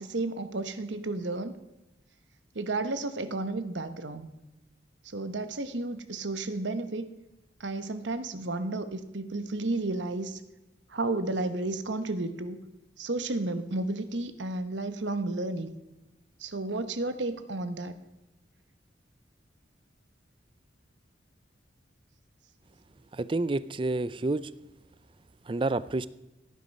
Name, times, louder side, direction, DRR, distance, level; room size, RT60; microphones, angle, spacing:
voice 1, 0.0-1.5 2.5-4.3 5.0-7.1 7.6-10.4 10.9-12.6 13.0-15.7 16.4-18.0, right 2 dB, 75° right, 10 dB, 1.1 m, -32 dB
voice 2, 23.1-24.5 25.5-26.1, right 2 dB, 25° right, 17 dB, 0.4 m, -29 dB
16.5 x 10.0 x 5.4 m, 0.99 s
head